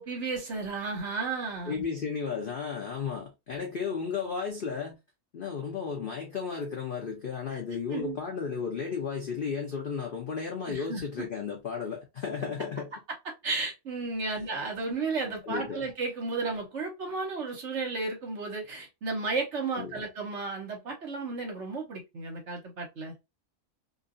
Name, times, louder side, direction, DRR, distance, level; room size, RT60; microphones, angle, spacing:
voice 1, 0.0-1.8 7.5-7.6 7.9-8.2 10.7-11.3 13.2-23.1, right 3 dB, 55° right, 1.1 m, -33 dB
voice 2, 1.7-5.0 5.3-12.9 15.4-15.8 19.8-20.0, left 6 dB, 60° left, 0.5 m, -34 dB
2.7 x 2.5 x 2.5 m
omnidirectional pair, 1.6 m